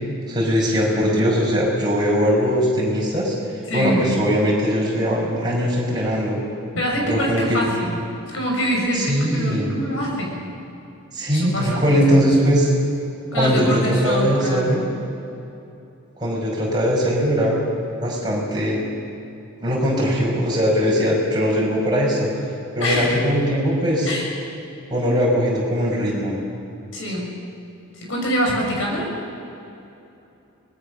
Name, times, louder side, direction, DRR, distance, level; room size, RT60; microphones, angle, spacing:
voice 1, 0.3-3.3 3.7-6.4 7.1-7.6 8.9-9.7 11.1-12.7 13.3-14.8 16.2-17.6 18.0-18.8 19.6-22.3 22.8-24.1 24.9-26.3, equal, 20° right, -4 dB, 5.7 m, -20 dB
voice 2, 3.7-4.0 6.7-8.0 8.3-10.4 11.3-12.3 13.3-14.7 22.8-23.2 24.0-24.3 26.9-27.4 27.9-29.1, equal, 60° left, -1 dB, 6.1 m, -25 dB
24.5 x 20.0 x 6.6 m, 2.8 s
head